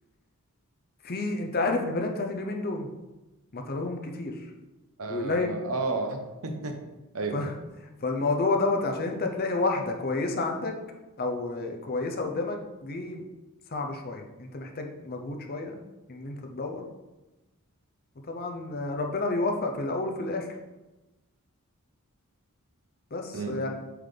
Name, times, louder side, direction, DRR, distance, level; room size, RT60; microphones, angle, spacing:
voice 1, 1.0-2.9 3.5-4.5 5.1-5.5 7.3-7.5 8.0-10.7 11.2-13.3 13.7-15.8 16.1-16.9 18.3-20.5 23.1-23.7, left 3 dB, 45° left, 3 dB, 0.7 m, -30 dB
voice 2, 5.0-6.2 6.4-6.8 7.1-7.4 23.3-23.6, right 3 dB, 70° right, 5 dB, 0.8 m, -31 dB
7.8 x 4.0 x 3.4 m, 1.1 s
head